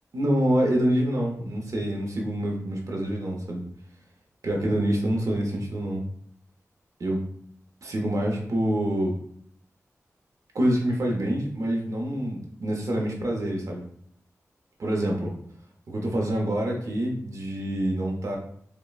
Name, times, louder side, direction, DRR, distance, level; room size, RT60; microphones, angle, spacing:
voice 1, 0.1-3.6 4.4-6.0 7.0-7.2 7.8-9.1 10.5-13.8 14.8-15.3 15.9-18.4, right 1 dB, 65° right, 0 dB, 0.8 m, -26 dB
5.2 x 2.2 x 2.4 m, 0.65 s
wide cardioid pair, 80°, 6 cm